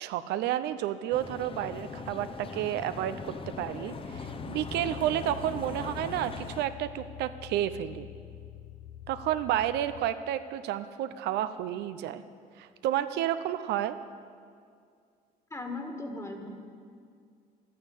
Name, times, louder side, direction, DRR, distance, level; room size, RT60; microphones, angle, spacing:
voice 1, 0.0-3.2 3.6-8.1 9.1-12.2 12.6-14.0, right 12 dB, 85° right, 12 dB, 0.6 m, -31 dB
sound 1, 1.1-6.7, left 4 dB, 30° left, 0.9 m, -40 dB
sound 2, 4.1-10.1, left 13 dB, 65° left, 0.6 m, -46 dB
voice 2, 15.5-16.5, left 2 dB, 15° left, 4 dB, 1.7 m, -37 dB
11.5 x 9.3 x 8.4 m, 2.2 s
cardioid pair, 110°, 17 cm